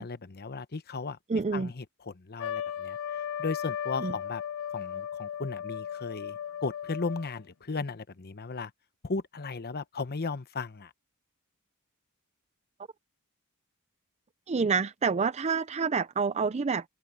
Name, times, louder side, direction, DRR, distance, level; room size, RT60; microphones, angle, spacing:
voice 1, 0.0-1.2 1.5-3.0 3.4-4.4 4.7-8.7 9.0-10.9, left 4 dB, 45° left, 0.9 m, -36 dB
voice 2, 1.3-1.7 4.0-4.1 14.5-16.8, right 5 dB, 30° right, 0.4 m, -28 dB
Trumpet, 2.4-7.4, left 9 dB, 65° left, 0.6 m, -36 dB
head